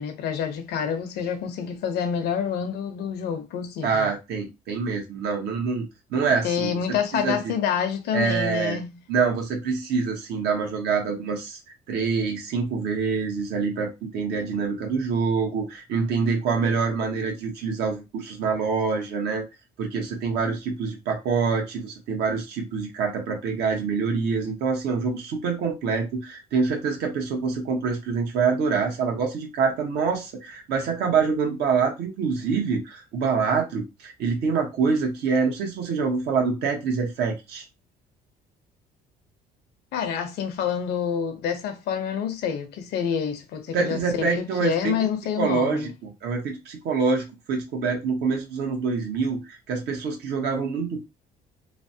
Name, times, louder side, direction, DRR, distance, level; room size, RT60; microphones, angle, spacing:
voice 1, 0.0-4.1 6.4-9.0 39.9-45.9, left 7 dB, 75° left, 0.7 m, -28 dB
voice 2, 3.8-6.7 7.2-7.5 8.1-8.8 9.1-11.6 11.9-19.5 19.8-37.6 43.7-44.9 45.4-51.0, right 5 dB, 75° right, 1.1 m, -26 dB
3.1 x 2.1 x 2.7 m
cardioid pair, 110°, 17 cm